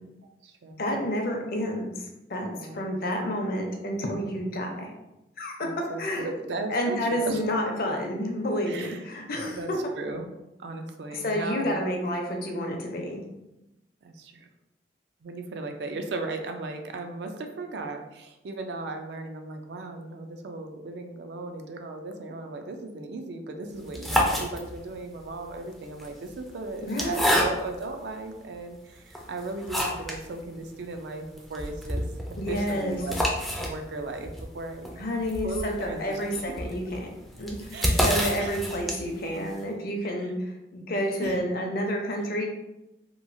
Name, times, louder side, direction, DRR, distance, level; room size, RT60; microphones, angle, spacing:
voice 1, 0.2-0.8 2.5-2.8 3.2-3.3 5.6-7.4 8.7-9.0 9.5-10.3 10.6-11.9 14.0-14.5 15.2-32.0 32.5-33.1 33.6-35.0 35.4-36.4 37.7-38.1 38.4-38.6 41.2-41.4, right 3 dB, 75° right, 5 dB, 0.4 m, -36 dB
voice 2, 0.8-1.9 2.3-4.9 5.4-5.6 6.0-6.3 6.7-9.8 11.1-13.2 26.8-27.3 32.4-33.0 35.0-37.1 37.4-42.4, equal, 55° left, 1 dB, 0.5 m, -30 dB
sound 1, 23.8-25.0 25.8-27.9 28.5-28.6 29.1-30.2 30.6-30.7 30.9-31.0 31.4-39.3, equal, ahead, 0.3 m, -28 dB
2.9 x 2.3 x 2.5 m, 0.93 s
head